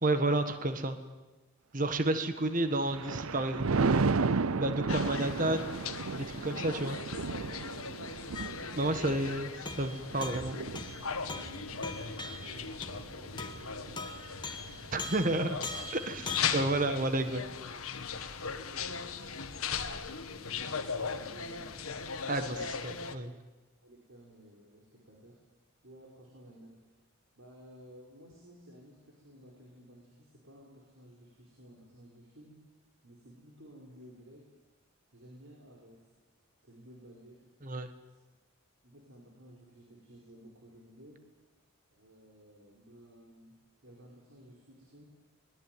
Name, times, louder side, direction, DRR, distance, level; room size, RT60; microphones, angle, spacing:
voice 1, 0.0-1.0 1.7-4.1 4.6-5.8 6.3-7.0 8.8-9.5 9.8-10.6 14.9-15.6 15.9-16.2 16.5-17.4 22.3-22.6 22.8-23.3 37.6-37.9, right 2 dB, 40° right, 9 dB, 1.5 m, -31 dB
Thunder, 2.5-14.0 14.5-14.8, right 4 dB, 85° right, 0.7 m, -34 dB
sound 1, 4.9-23.2, left 6 dB, 85° left, 1.6 m, -39 dB
sound 2, 8.3-8.7 9.1-9.4 9.6-13.0 13.4-13.7 14.0-16.7, left 2 dB, 20° left, 1.6 m, -42 dB
voice 2, 8.7-9.3 11.3-14.2 16.1-16.7 18.7-19.4 19.8-21.7 22.3-22.7 23.8-25.4 25.8-26.9 27.3-32.6 33.0-34.5 35.1-36.1 36.6-37.4 38.1-38.2 38.8-41.2 41.9-43.6 43.8-45.2, right 1 dB, 70° right, -1 dB, 5.2 m, -54 dB
22.5 x 20.5 x 9.4 m, 1.2 s
head